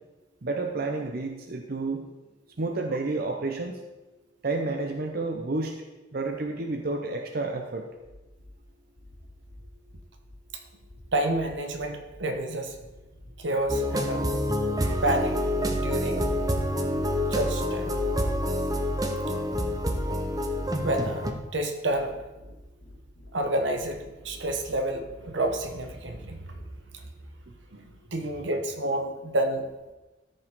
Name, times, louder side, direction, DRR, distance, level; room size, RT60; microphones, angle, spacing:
voice 1, 0.4-2.0 2.6-3.8 4.4-5.7 6.1-7.9, right 3 dB, 55° right, 3 dB, 0.7 m, -30 dB
sound 1, 8.0-8.5 9.0-10.4 10.8-12.2 12.6-14.1 14.5-15.9 16.3-17.8 18.2-19.6 20.0-21.5 21.9-23.3 23.7-25.1 25.6-26.6, left 1 dB, 70° left, 1.7 m, -50 dB
voice 2, 11.1-12.8 13.4-14.3 15.0-15.4 15.7-16.3 17.3-18.0 20.8-22.2 23.3-26.5 26.9-27.0 27.7-29.7, right 1 dB, 80° right, 5 dB, 1.1 m, -29 dB
sound 2, 13.7-21.3, equal, 20° right, 0.7 m, -27 dB
13.5 x 5.3 x 3.7 m, 1.1 s
head